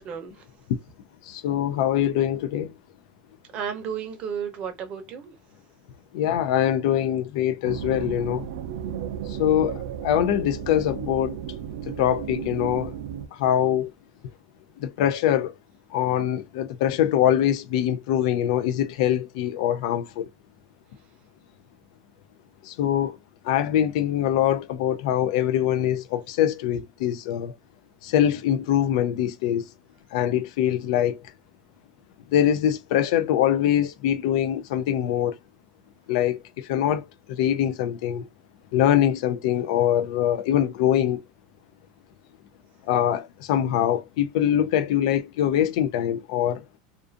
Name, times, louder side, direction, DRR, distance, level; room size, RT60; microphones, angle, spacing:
voice 1, 1.2-2.7 6.1-8.5 9.3-11.4 11.9-13.0 13.3-13.9 14.8-15.5 15.9-20.3 22.6-23.2 23.4-27.5 28.0-29.6 30.1-31.2 32.3-35.4 36.1-38.3 38.7-41.2 42.9-46.6, left 10 dB, 70° left, 0.4 m, -23 dB
voice 2, 3.5-5.3, right 7 dB, 35° right, 0.6 m, -33 dB
sound 1, 7.6-13.3, right 9 dB, 90° right, 0.4 m, -34 dB
2.5 x 2.4 x 2.4 m
supercardioid pair, 155°, 3 cm